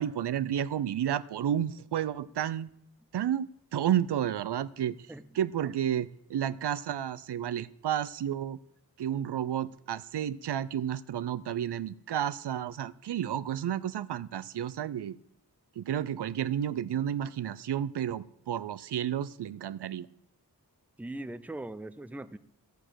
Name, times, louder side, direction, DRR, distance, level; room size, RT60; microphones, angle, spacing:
voice 1, 0.0-2.7 3.1-5.0 5.4-8.6 9.0-15.2 15.8-20.1, right 10 dB, 85° right, 16 dB, 0.5 m, -31 dB
voice 2, 21.0-22.4, right 1 dB, 5° right, 13 dB, 0.5 m, -40 dB
12.0 x 8.3 x 6.3 m, 0.71 s
wide cardioid pair, 75°, 40 cm